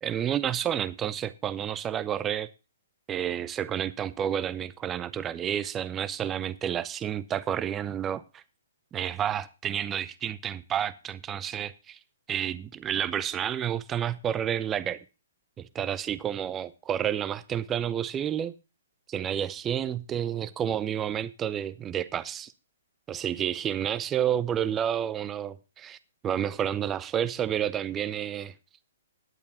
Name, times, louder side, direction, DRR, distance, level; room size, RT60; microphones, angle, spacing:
voice 1, 0.0-2.5 3.1-8.4 8.9-12.0 12.3-15.0 15.6-18.5 19.1-22.5 23.1-26.0 26.2-28.5, right 9 dB, 20° right, 0.5 m, -30 dB
16.5 x 11.0 x 2.8 m
figure-of-eight pair, 125°, 0 cm